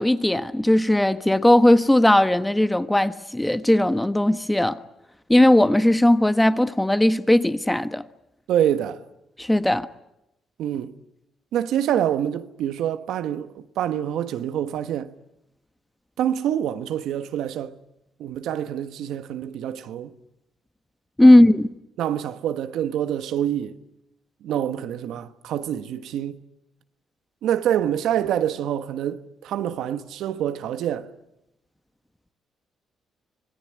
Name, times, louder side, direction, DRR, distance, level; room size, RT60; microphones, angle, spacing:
voice 1, 0.0-4.8 5.3-8.0 9.4-9.9 21.2-21.7, left 1 dB, 10° left, 1.3 m, -17 dB
voice 2, 8.5-9.0 10.6-11.0 11.5-15.1 16.2-17.8 18.2-20.1 21.2-21.3 22.0-23.8 24.4-26.4 27.4-31.1, right 10 dB, 85° right, 1.3 m, -26 dB
25.5 x 18.5 x 9.9 m
cardioid pair, 90°, 0 cm